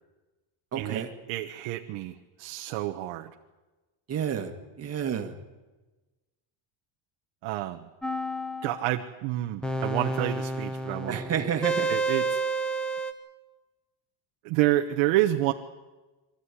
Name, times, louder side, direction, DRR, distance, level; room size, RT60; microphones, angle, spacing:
voice 1, 0.7-1.1 4.1-4.5 4.8-5.3 11.1-11.9, right 8 dB, 30° right, 5 dB, 1.9 m, -29 dB
voice 2, 1.3-3.3 7.4-7.9 8.6-11.2 11.9-12.4 14.4-15.5, right 15 dB, 75° right, 5 dB, 1.3 m, -28 dB
sound 1, 8.0-8.9 9.6-13.1, right 2 dB, ahead, 0.9 m, -30 dB
24.0 x 14.5 x 9.8 m, 1.2 s
cardioid pair, 170°, 49 cm